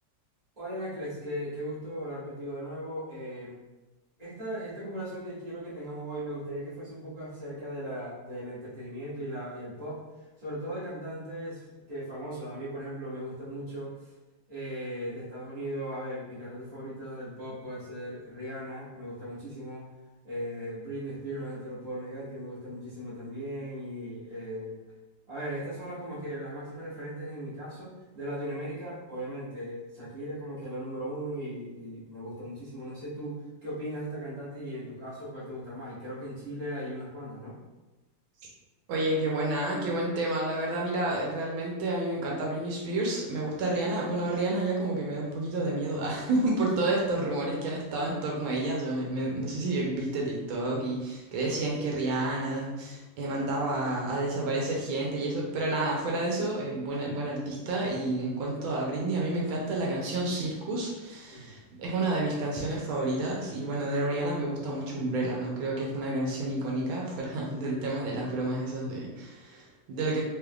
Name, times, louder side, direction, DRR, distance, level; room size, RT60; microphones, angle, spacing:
voice 1, 0.6-3.5 4.2-10.0 10.4-14.1 14.5-19.9 20.2-24.7 25.3-37.6 46.8-47.2 61.3-61.6, equal, 20° right, -10 dB, 1.4 m, -38 dB
voice 2, 38.9-70.2, right 2 dB, 80° right, -2 dB, 1.6 m, -30 dB
3.6 x 3.5 x 2.3 m, 1.1 s
omnidirectional pair, 2.2 m